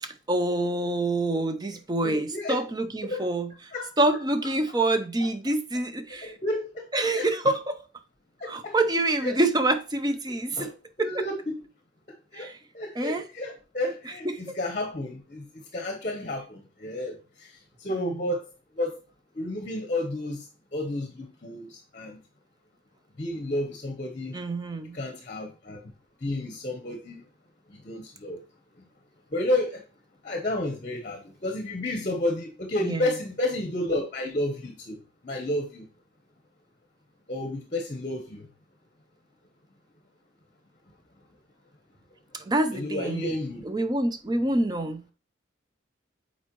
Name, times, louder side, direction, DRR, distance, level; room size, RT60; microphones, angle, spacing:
voice 1, 0.0-3.5 4.0-6.3 6.9-7.8 8.5-10.7 11.0-11.3 12.3-12.6 13.0-13.2 14.2-14.6 17.9-18.3 24.3-25.0 32.8-33.1 42.3-43.3 43.6-45.1, right 2 dB, 20° right, 0.5 m, -27 dB
voice 2, 2.0-2.6 3.1-3.3 3.7-3.9 6.2-7.5 8.4-8.7 9.2-9.4 10.6-10.7 11.0-11.6 12.3-12.5 12.7-18.5 18.7-19.0 19.3-20.5 20.7-22.2 23.2-24.4 24.9-25.9 26.2-27.3 27.7-28.4 29.3-29.8 30.2-35.0 35.2-35.9 37.3-38.5 42.7-43.6, left 1 dB, 35° left, 0.8 m, -31 dB
7.2 x 4.4 x 3.0 m
head